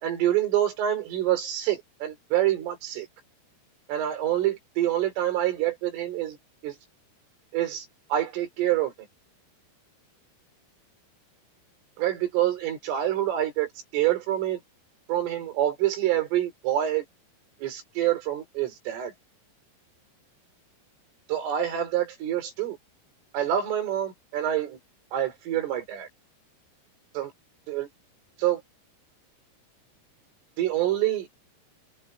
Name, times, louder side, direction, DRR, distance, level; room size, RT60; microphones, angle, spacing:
voice 1, 0.0-3.1 3.9-6.4 6.6-6.8 7.5-8.9 12.0-14.6 15.1-17.1 17.6-19.1 21.3-22.8 23.3-24.8 25.1-26.1 27.2-27.3 27.7-27.9 28.4-28.6 30.6-31.3, right 12 dB, 75° right, 6.9 m, -26 dB
omnidirectional pair, 5.8 m